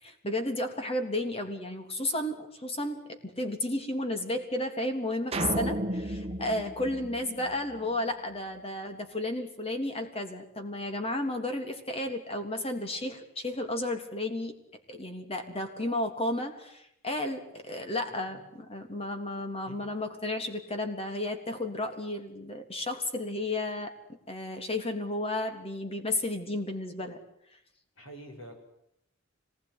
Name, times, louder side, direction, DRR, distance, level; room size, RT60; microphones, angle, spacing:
voice 1, 0.0-14.5 14.9-27.2, left 1 dB, 30° left, 6 dB, 3.3 m, -33 dB
sound 1, 5.3-7.9, right 1 dB, 30° right, 1.9 m, -33 dB
voice 2, 28.0-28.5, right 1 dB, 75° left, 4 dB, 7.1 m, -47 dB
25.5 x 20.0 x 9.9 m, 0.76 s
head